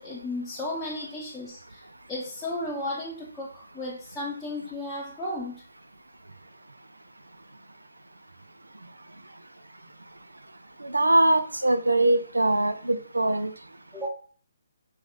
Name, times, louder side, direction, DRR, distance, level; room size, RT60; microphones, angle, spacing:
voice 1, 0.0-1.8 2.1-5.6 13.9-14.1, left 1 dB, 5° left, -8 dB, 0.8 m, -34 dB
voice 2, 10.8-13.5, right 2 dB, 85° right, 10 dB, 0.5 m, -22 dB
4.8 x 4.1 x 2.4 m, 0.43 s
figure-of-eight pair, 140°, 0 cm